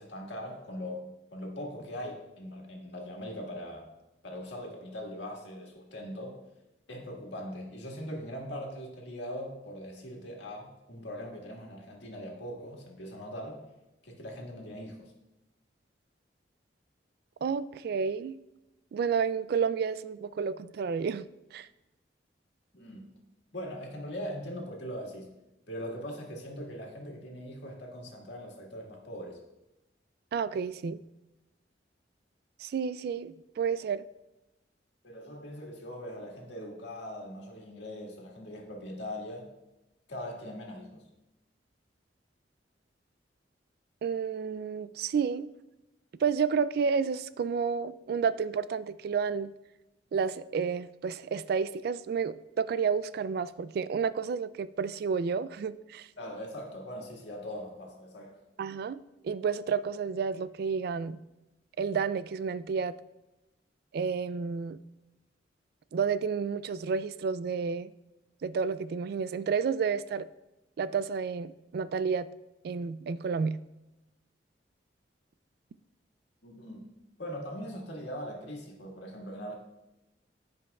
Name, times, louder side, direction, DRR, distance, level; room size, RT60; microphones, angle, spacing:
voice 1, 0.0-3.9 4.2-6.4 6.9-13.6 14.0-15.1 22.7-23.1 23.5-25.3 25.7-29.4 35.0-39.5 40.1-41.0 56.2-58.4 76.4-79.5, equal, 85° left, 0 dB, 1.8 m, -41 dB
voice 2, 17.4-18.4 18.9-21.7 30.3-31.0 32.6-34.0 44.0-45.5 46.2-49.5 50.1-56.1 58.6-59.0 59.2-61.2 61.8-63.0 63.9-64.8 65.9-67.9 68.4-70.3 70.8-72.3 72.6-73.6, right 6 dB, 60° right, 16 dB, 0.3 m, -30 dB
15.0 x 5.3 x 2.4 m, 0.97 s
head